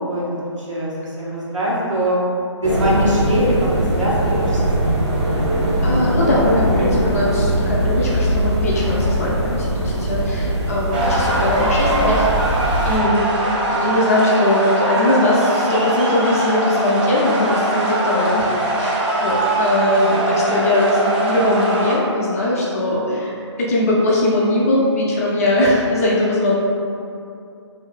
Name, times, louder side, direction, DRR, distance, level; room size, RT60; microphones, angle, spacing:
voice 1, 0.1-2.2 2.6-3.7 3.9-5.0 19.9-20.2, equal, 90° right, -7 dB, 1.2 m, -22 dB
sound 1, 2.6-13.0, right 1 dB, 60° right, 0.8 m, -20 dB
voice 2, 5.8-12.3 12.8-13.2 13.7-18.5 18.8-26.5, left 1 dB, 30° left, -5 dB, 0.5 m, -20 dB
sound 2, 10.9-21.9, right 2 dB, 20° right, 0.4 m, -21 dB
2.7 x 2.6 x 3.7 m, 2.5 s
hypercardioid pair, 155°, 16 cm